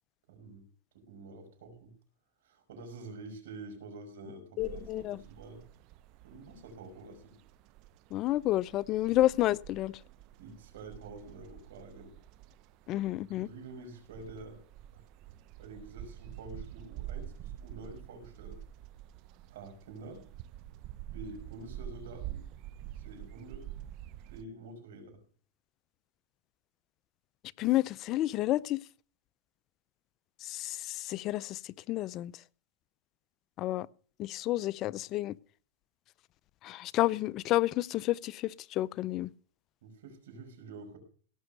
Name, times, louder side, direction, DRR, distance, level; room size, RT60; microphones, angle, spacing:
voice 1, 0.3-0.6 0.9-1.9 2.4-5.7 6.2-7.4 9.0-9.1 10.4-12.1 13.3-14.6 14.9-15.0 15.6-18.6 19.5-20.2 21.1-22.5 23.0-23.7 24.3-25.2 39.8-41.0, right 2 dB, 75° right, 5.7 m, -48 dB
voice 2, 4.6-5.2 8.1-9.9 12.9-13.5 27.6-28.8 30.4-32.3 33.6-33.9 34.2-35.4 36.6-39.3, left 15 dB, 35° left, 0.5 m, -30 dB
sound 1, 4.6-24.4, right 12 dB, 45° right, 0.6 m, -47 dB
17.5 x 6.3 x 6.6 m
supercardioid pair, 135°, 0 cm